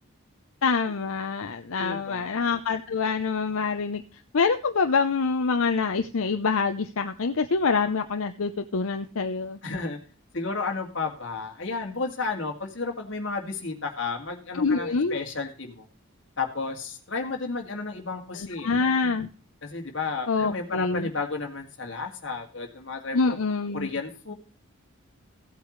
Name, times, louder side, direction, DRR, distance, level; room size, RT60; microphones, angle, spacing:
voice 1, 0.6-4.0 4.3-9.6 14.5-15.2 18.3-19.3 20.3-21.1 23.1-23.9, left 4 dB, 85° left, 7 dB, 0.7 m, -26 dB
voice 2, 1.8-2.5 9.6-10.0 10.3-15.9 16.4-18.7 19.6-23.4 23.7-24.3, left 4 dB, 60° left, 2 dB, 2.2 m, -32 dB
16.0 x 8.3 x 3.2 m, 0.38 s
head